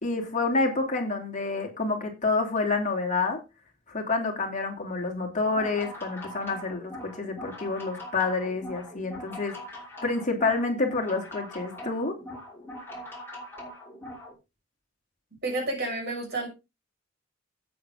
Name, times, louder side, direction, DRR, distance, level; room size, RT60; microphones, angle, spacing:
voice 1, 0.0-3.4 3.9-9.5 10.0-12.1, left 3 dB, 40° left, 2 dB, 3.1 m, -28 dB
sound 1, 5.4-14.3, left 1 dB, 10° left, 5.9 m, -42 dB
voice 2, 15.4-16.5, right 2 dB, 55° right, 3 dB, 6.2 m, -30 dB
12.0 x 9.2 x 3.8 m, 0.27 s
head